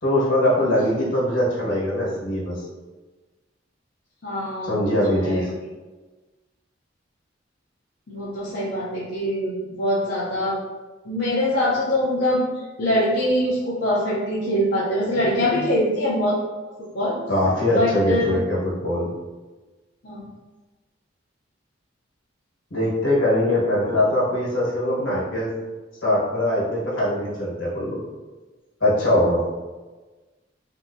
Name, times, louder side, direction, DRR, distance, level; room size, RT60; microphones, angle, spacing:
voice 1, 0.0-2.6 4.6-5.5 17.3-19.1 22.7-25.5 26.0-28.0 28.8-29.4, left 1 dB, 75° left, -6 dB, 1.4 m, -22 dB
voice 2, 4.2-5.5 8.1-10.6 11.0-16.3 16.9-17.2 17.7-18.4 20.0-20.3 23.4-23.5, equal, 55° left, -8 dB, 0.7 m, -23 dB
3.6 x 2.7 x 2.7 m, 1.2 s
head